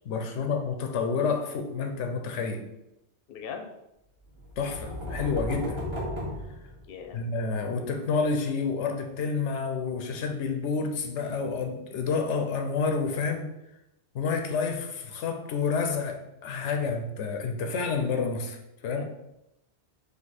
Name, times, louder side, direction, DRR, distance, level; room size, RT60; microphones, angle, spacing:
voice 1, 0.0-2.6 4.6-5.8 7.1-13.5 14.1-18.6 18.8-19.0, left 5 dB, 85° left, 5 dB, 0.9 m, -29 dB
voice 2, 3.3-3.7 6.9-7.2 18.9-19.0, left 6 dB, 65° left, 4 dB, 0.8 m, -40 dB
sound 1, 4.4-7.3, left 1 dB, 25° right, 1.0 m, -35 dB
4.2 x 2.7 x 4.1 m, 0.87 s
omnidirectional pair, 1.2 m